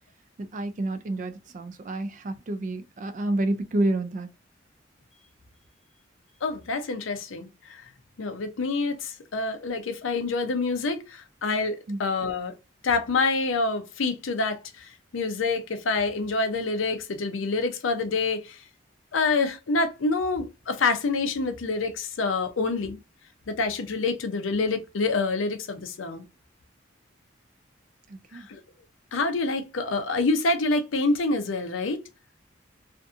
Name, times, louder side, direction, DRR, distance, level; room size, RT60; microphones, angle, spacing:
voice 1, 0.4-4.3 11.9-12.0 28.1-28.5, right 2 dB, 40° right, 0.3 m, -29 dB
voice 2, 6.4-7.8 8.2-12.5 12.8-18.6 19.1-23.0 23.5-26.2 28.3-28.6 29.1-32.0, left 3 dB, 85° left, 0.5 m, -27 dB
2.6 x 2.5 x 2.3 m
head